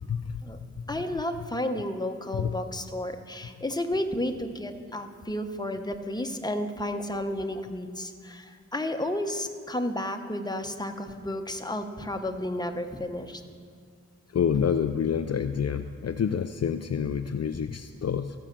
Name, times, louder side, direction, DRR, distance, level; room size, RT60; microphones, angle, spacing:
voice 1, 0.9-13.4, left 1 dB, 15° left, 5 dB, 1.0 m, -32 dB
voice 2, 14.3-18.3, left 7 dB, 55° left, 8 dB, 0.4 m, -27 dB
15.0 x 5.6 x 7.4 m, 2.2 s
wide cardioid pair, 60°, 31 cm